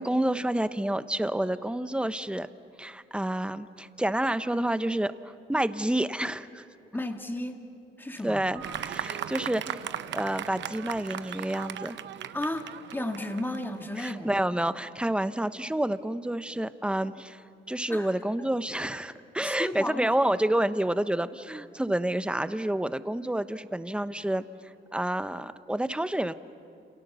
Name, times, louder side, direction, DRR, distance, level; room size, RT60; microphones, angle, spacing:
voice 1, 0.0-2.5 2.8-6.6 8.2-12.0 14.0-26.3, right 1 dB, 5° right, 12 dB, 0.9 m, -29 dB
voice 2, 6.9-7.6 8.0-8.4 12.3-12.7 12.9-14.3 17.9-18.1 19.4-20.1, left 1 dB, 10° left, 4 dB, 2.1 m, -33 dB
Keyboard (musical), 8.5-10.3, right 4 dB, 85° right, 6.7 m, -50 dB
Fireworks, 8.6-14.3, right 10 dB, 65° right, 0.8 m, -38 dB
29.5 x 28.0 x 7.0 m, 2.6 s
cardioid pair, 90°, 20 cm